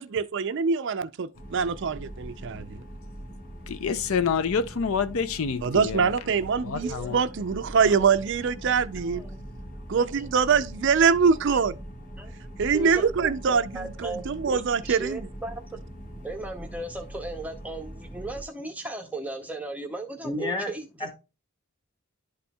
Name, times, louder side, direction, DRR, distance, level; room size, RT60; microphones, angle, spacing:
voice 1, 0.0-2.8 5.6-9.2 9.9-11.8 12.6-15.3, right 6 dB, 55° right, 0.4 m, -24 dB
sound 1, 1.3-18.4, right 1 dB, 40° left, 1.3 m, -42 dB
voice 2, 3.7-6.1 6.6-7.2, left 6 dB, 70° left, 0.5 m, -27 dB
voice 3, 6.8-7.2 7.7-7.9 9.1-9.4 9.9-10.2 11.5-11.6 12.2-12.3 12.7-14.6 14.9-15.6 16.2-20.9, right 2 dB, 5° right, 0.6 m, -36 dB
voice 4, 20.2-20.7 21.0-21.1, left 1 dB, 20° left, 1.9 m, -30 dB
11.5 x 4.3 x 2.2 m
head